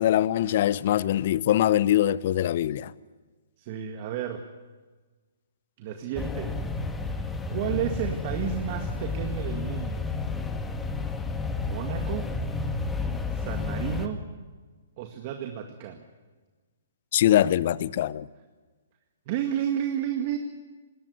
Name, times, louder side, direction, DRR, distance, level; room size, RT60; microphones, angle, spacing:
voice 1, 0.0-2.9 17.1-18.3, left 12 dB, 50° left, 0.7 m, -23 dB
voice 2, 3.6-4.4 5.8-6.5 7.5-10.1 11.5-12.3 13.3-14.3 15.0-16.1 19.3-20.4, right 10 dB, 40° right, 2.0 m, -32 dB
sound 1, 6.1-14.1, left 3 dB, 10° left, 1.9 m, -31 dB
20.5 x 18.5 x 9.8 m
hypercardioid pair, 130°, 0 cm